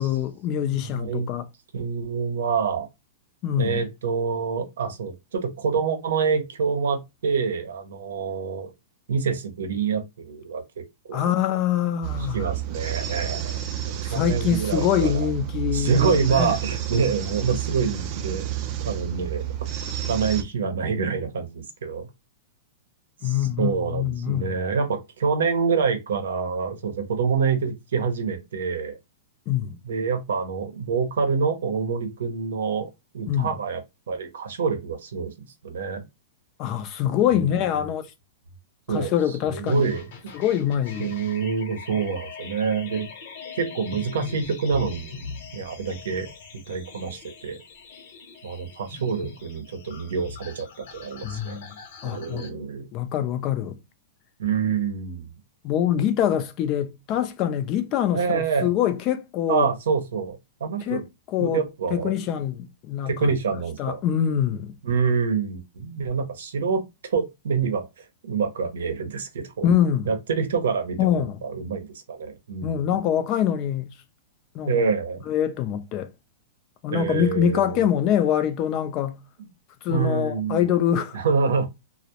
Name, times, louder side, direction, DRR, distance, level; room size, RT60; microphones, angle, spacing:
voice 1, 0.0-1.5 3.4-3.8 11.1-12.5 14.0-16.6 23.2-24.6 29.5-29.8 33.3-33.5 36.6-38.1 38.9-39.9 40.3-41.1 51.2-51.8 52.0-52.4 52.9-53.8 55.6-59.7 60.8-61.0 61.3-61.6 61.9-63.3 63.8-64.8 69.6-70.1 71.0-71.4 72.6-73.9 74.5-74.9 75.3-76.1 76.8-79.2 79.8-81.2, left 10 dB, 35° left, 0.3 m, -24 dB
voice 2, 0.7-1.3 1.7-2.9 3.6-8.7 9.1-11.2 12.3-15.3 15.7-18.4 18.8-19.4 20.0-22.1 23.2-29.0 29.9-33.8 34.1-35.3 35.6-36.0 37.3-37.4 38.9-39.1 39.5-40.0 41.0-43.1 43.5-45.2 45.5-46.3 46.7-47.6 48.4-51.6 52.0-52.9 54.4-55.3 58.1-58.7 59.5-61.0 61.4-62.1 63.1-64.0 64.8-69.7 70.1-72.8 74.7-75.2 76.9-77.8 79.9-80.6 81.1-81.7, right 5 dB, 85° right, 0.6 m, -26 dB
sound 1, 12.0-20.4, right 11 dB, 35° right, 0.4 m, -30 dB
sound 2, 39.7-52.5, left 5 dB, 55° left, 0.7 m, -41 dB
2.2 x 2.0 x 2.8 m
hypercardioid pair, 155°, 0 cm